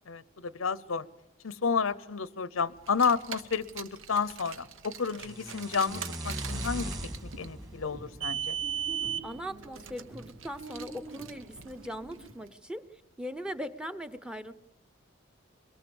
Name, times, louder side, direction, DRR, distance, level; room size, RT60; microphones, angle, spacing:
voice 1, 0.1-1.0 1.4-6.9 7.4-8.6, left 5 dB, 85° left, 17 dB, 0.8 m, -31 dB
Car, 2.8-12.3, right 8 dB, 75° right, 1.1 m, -39 dB
sound 1, 5.2-9.3, right 1 dB, 20° right, 1.9 m, -39 dB
sound 2, 7.0-12.3, right 2 dB, 55° right, 3.8 m, -48 dB
voice 2, 9.2-14.5, equal, 5° right, 11 dB, 0.8 m, -40 dB
23.5 x 22.0 x 7.2 m, 1.0 s
head